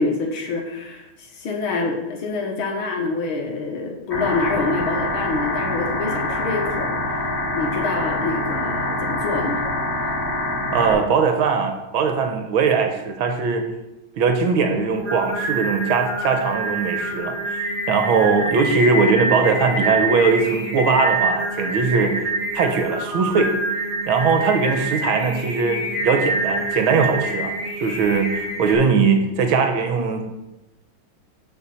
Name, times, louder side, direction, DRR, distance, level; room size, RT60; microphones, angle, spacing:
voice 1, 0.0-7.2 7.5-9.7 10.0-10.2, left 3 dB, 70° left, 2 dB, 2.1 m, -26 dB
sound 1, 4.1-10.9, left 2 dB, 30° left, 2.5 m, -25 dB
voice 2, 10.7-13.6 14.2-22.2 22.5-23.5 24.1-27.5 27.8-30.2, right 5 dB, 75° right, 5 dB, 1.8 m, -20 dB
Singing, 14.7-28.7, right 2 dB, 25° right, 1.8 m, -26 dB
7.2 x 4.6 x 7.0 m, 0.97 s
omnidirectional pair, 2.3 m